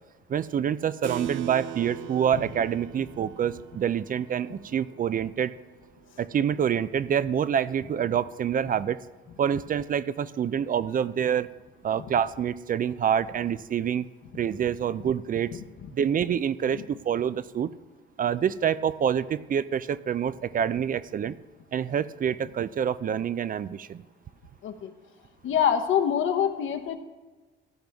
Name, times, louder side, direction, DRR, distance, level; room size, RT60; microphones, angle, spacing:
voice 1, 0.3-5.5 6.2-9.0 9.4-11.5 11.8-14.1 14.3-15.5 15.9-17.7 18.2-21.4 21.7-24.0, right 8 dB, 45° right, 16 dB, 0.5 m, -27 dB
Keyboard (musical), 1.0-7.0, right 11 dB, 75° right, 0.7 m, -41 dB
voice 2, 25.4-27.0, left 8 dB, 80° left, 7 dB, 1.1 m, -25 dB
15.5 x 10.5 x 3.5 m, 1.3 s
cardioid pair, 90°, 20 cm